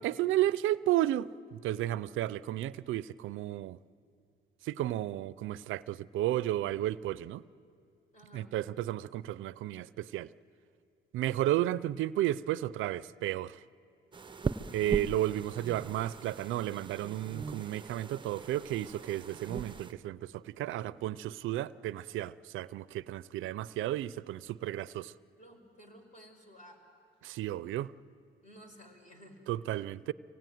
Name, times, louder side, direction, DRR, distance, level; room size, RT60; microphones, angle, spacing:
voice 1, 0.0-3.8 4.6-7.4 8.3-10.3 11.1-13.6 14.7-25.1 27.2-27.9 29.5-30.1, right 13 dB, 80° right, 17 dB, 0.5 m, -33 dB
voice 2, 8.1-8.5 25.4-26.8 28.4-29.4, equal, 35° left, 3 dB, 4.9 m, -54 dB
sound 1, 14.1-19.9, right 4 dB, 25° right, 0.6 m, -40 dB
24.5 x 18.0 x 9.3 m, 2.5 s
cardioid pair, 90°, 20 cm